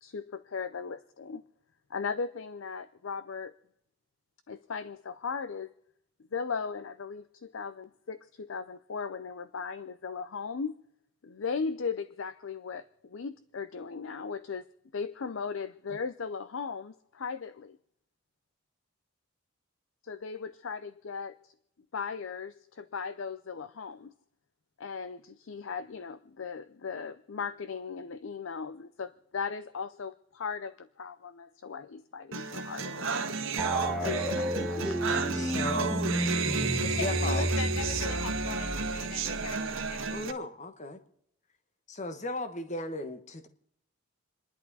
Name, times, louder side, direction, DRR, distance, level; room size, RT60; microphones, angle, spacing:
voice 1, 0.0-1.4 1.9-3.5 4.5-5.7 6.3-10.8 11.2-14.7 14.9-17.8 20.0-21.5 21.9-24.1 24.8-33.3 34.0-34.9, left 5 dB, 60° left, 0.5 m, -37 dB
sound 1, 32.3-40.3, right 4 dB, 60° right, 1.4 m, -32 dB
sound 2, 33.6-40.2, equal, 5° left, 1.2 m, -32 dB
voice 2, 35.3-36.0 36.8-37.5 40.1-41.0 41.9-43.5, left 2 dB, 30° left, 1.1 m, -36 dB
voice 3, 37.0-40.1, left 4 dB, 75° left, 0.9 m, -39 dB
28.5 x 11.0 x 4.1 m
head